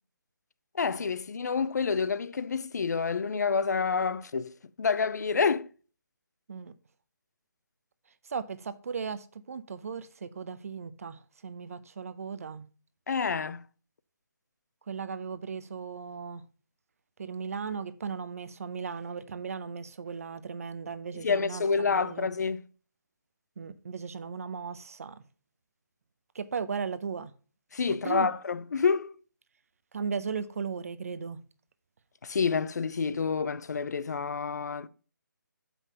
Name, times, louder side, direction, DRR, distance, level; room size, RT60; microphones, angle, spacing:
voice 1, 0.7-5.7 13.1-13.6 21.1-22.6 27.7-29.1 32.2-34.9, left 5 dB, 55° left, 0.6 m, -28 dB
voice 2, 8.3-12.7 14.9-16.4 17.2-22.3 23.6-25.2 26.3-27.3 27.9-28.3 29.9-31.4, right 6 dB, 45° right, 0.7 m, -36 dB
7.3 x 5.6 x 5.4 m
hypercardioid pair, 165°, 11 cm